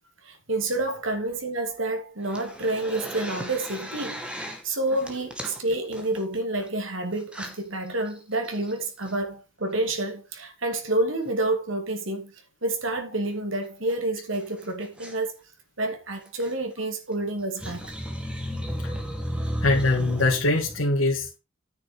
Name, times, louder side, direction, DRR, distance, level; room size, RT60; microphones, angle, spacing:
voice 1, 0.2-12.3 12.6-15.3 15.8-17.9, right 2 dB, 75° right, 2.8 m, -29 dB
sound 1, 2.2-4.6 4.9-6.7 7.2-7.6 8.1-8.2 8.4-9.1 11.2-11.5 13.3-13.4 13.6-13.7 13.9-14.0 14.3-15.2 16.3-16.5 17.4-20.8, equal, 5° right, 1.9 m, -34 dB
voice 2, 19.6-21.4, left 2 dB, 80° left, 2.1 m, -23 dB
9.4 x 6.9 x 5.4 m
head